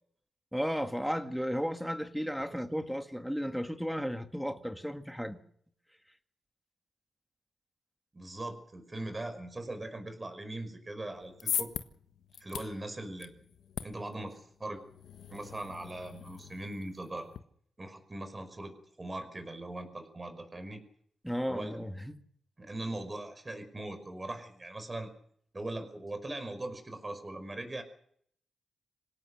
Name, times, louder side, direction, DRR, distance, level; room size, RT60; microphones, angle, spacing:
voice 1, 0.5-5.4 21.2-22.2, equal, ahead, 2.0 m, -34 dB
voice 2, 8.1-11.7 12.4-13.3 13.8-14.8 15.3-17.3 17.8-20.8 21.5-21.8 22.6-25.1 25.5-27.8, right 2 dB, 20° right, 5.4 m, -40 dB
sound 1, 11.1-17.4, left 8 dB, 85° left, 1.3 m, -41 dB
26.0 x 17.5 x 6.6 m
wide cardioid pair, 115°, 0 cm